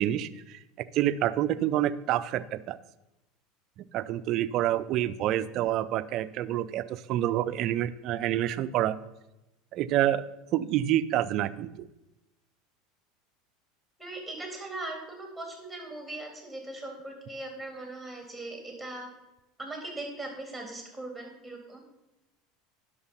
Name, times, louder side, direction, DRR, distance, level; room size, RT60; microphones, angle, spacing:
voice 1, 0.0-2.8 3.9-9.0 9.7-10.2 10.5-11.9, right 12 dB, 55° right, 14 dB, 0.5 m, -28 dB
voice 2, 14.0-19.1 19.6-21.8, right 2 dB, ahead, 2 dB, 3.7 m, -39 dB
10.5 x 6.6 x 5.6 m, 0.95 s
supercardioid pair, 105°, 0 cm